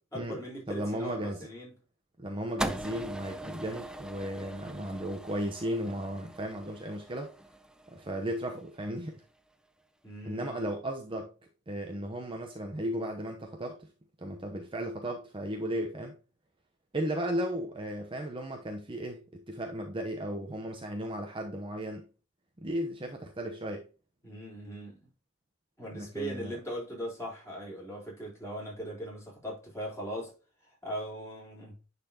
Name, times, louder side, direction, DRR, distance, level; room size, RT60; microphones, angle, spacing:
voice 1, 0.1-1.7 10.0-10.7 24.2-25.1 25.8-30.3 30.8-31.8, equal, 15° left, 3.7 m, -39 dB
voice 2, 0.7-1.5 2.2-7.3 7.9-9.2 10.3-11.3 11.7-13.9 14.2-16.2 16.9-22.1 22.6-23.9 25.9-26.6, equal, 25° right, 0.8 m, -35 dB
sound 1, 2.6-8.9, right 1 dB, 5° right, 0.5 m, -41 dB
10.0 x 4.2 x 2.8 m
head